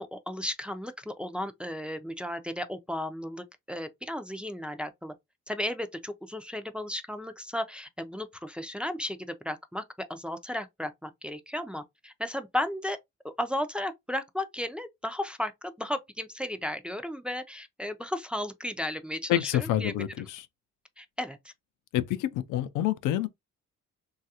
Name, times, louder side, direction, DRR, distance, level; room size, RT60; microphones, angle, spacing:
voice 1, 0.0-5.1 5.5-9.8 10.1-13.0 13.2-19.9 21.0-21.5, left 1 dB, 5° right, 0.4 m, -34 dB
voice 2, 19.3-20.5 21.9-23.3, left 12 dB, 90° left, 0.5 m, -27 dB
3.1 x 2.4 x 2.7 m
cardioid pair, 90°, 30 cm